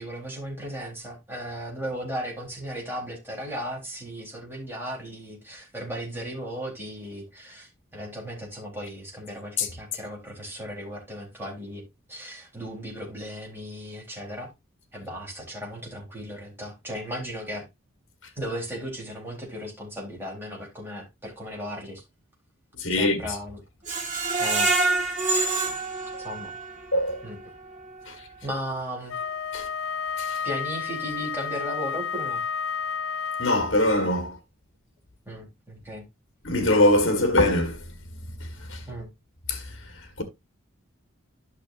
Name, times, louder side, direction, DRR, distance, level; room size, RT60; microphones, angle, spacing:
voice 1, 0.0-11.8 12.1-14.5 14.9-17.7 18.4-22.0 23.0-23.6 23.9-24.0 24.4-24.7 26.2-26.5 27.2-27.4 28.4-29.2 30.4-32.4 35.3-36.0 38.9-39.1, equal, 10° right, 3.8 m, -36 dB
voice 2, 22.8-23.4 26.9-27.2 28.0-28.3 29.5-29.7 30.2-30.4 33.4-34.4 36.4-37.8 38.4-38.9 39.5-40.2, left 1 dB, 60° left, 1.6 m, -23 dB
Screech, 23.9-26.8 27.3-27.4 27.8-27.9, right 3 dB, 35° right, 1.9 m, -26 dB
Wind instrument woodwind instrument, 29.1-34.0, left 6 dB, 80° left, 0.6 m, -31 dB
12.5 x 6.0 x 2.6 m
head